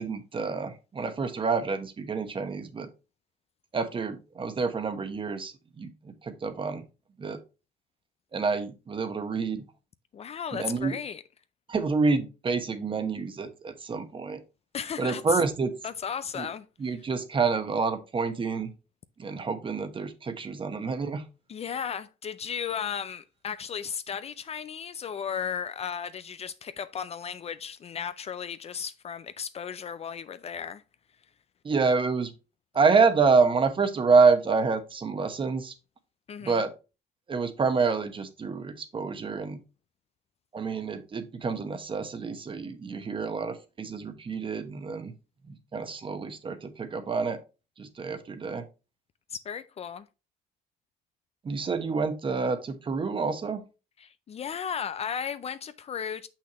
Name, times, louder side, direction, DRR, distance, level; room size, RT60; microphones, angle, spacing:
voice 1, 0.0-2.9 3.7-6.8 7.2-7.4 8.3-9.6 10.5-11.0 11.7-14.4 15.0-15.7 16.3-16.5 16.8-18.7 19.2-21.2 31.6-32.3 32.7-35.7 36.4-36.7 37.3-39.6 40.5-45.1 45.5-47.4 47.8-48.6 51.4-53.6, right 4 dB, 30° right, 1.1 m, -27 dB
voice 2, 10.1-11.2 14.7-15.4 15.8-16.7 21.5-30.8 36.3-36.6 49.3-50.1 54.0-56.3, left 7 dB, 40° left, 0.4 m, -35 dB
6.4 x 5.9 x 3.0 m
cardioid pair, 110°, 17 cm